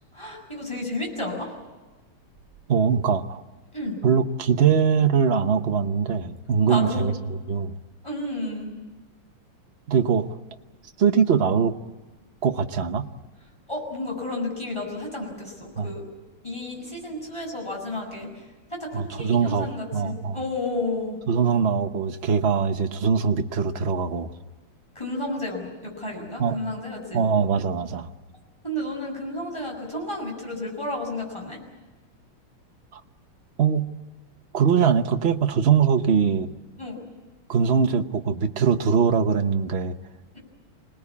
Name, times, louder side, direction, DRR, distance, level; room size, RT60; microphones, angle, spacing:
voice 1, 0.1-1.5 3.7-4.0 6.6-7.0 8.0-8.7 13.7-16.1 16.4-18.4 18.7-21.2 25.0-27.2 28.6-31.6 36.8-37.0 40.3-40.4, left 1 dB, 10° left, 0 dB, 7.0 m, -32 dB
voice 2, 2.7-3.4 4.0-7.1 7.5-7.7 9.9-10.3 11.0-11.8 12.4-13.1 15.8-15.9 18.9-20.4 21.3-24.3 26.4-26.6 27.1-28.1 32.9-33.0 33.6-33.9 34.5-36.5 37.5-40.0, right 6 dB, 45° right, 7 dB, 0.8 m, -22 dB
26.5 x 19.5 x 8.5 m, 1.2 s
omnidirectional pair, 2.4 m